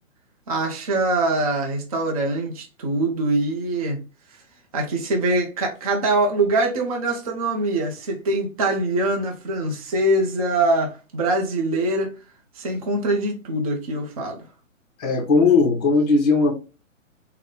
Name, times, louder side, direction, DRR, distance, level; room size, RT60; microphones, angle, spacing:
voice 1, 0.5-4.0 4.7-12.1 12.6-14.4, right 2 dB, 30° right, 0.5 m, -23 dB
voice 2, 15.0-16.5, left 4 dB, 30° left, 0.8 m, -18 dB
3.9 x 2.1 x 3.6 m
hypercardioid pair, 155°, 41 cm